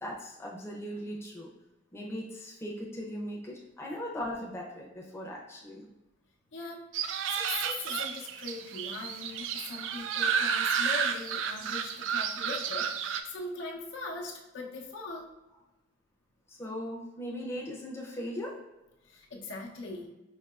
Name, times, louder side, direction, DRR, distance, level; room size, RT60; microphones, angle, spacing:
voice 1, 0.0-1.5 1.9-5.9 16.5-18.6, equal, 15° left, -3 dB, 0.6 m, -39 dB
voice 2, 6.5-6.9 7.3-15.3 19.0-20.1, left 3 dB, 80° left, -2 dB, 0.7 m, -40 dB
sound 1, 6.9-13.2, right 7 dB, 85° right, 0.3 m, -31 dB
4.6 x 2.8 x 2.4 m, 1.0 s
head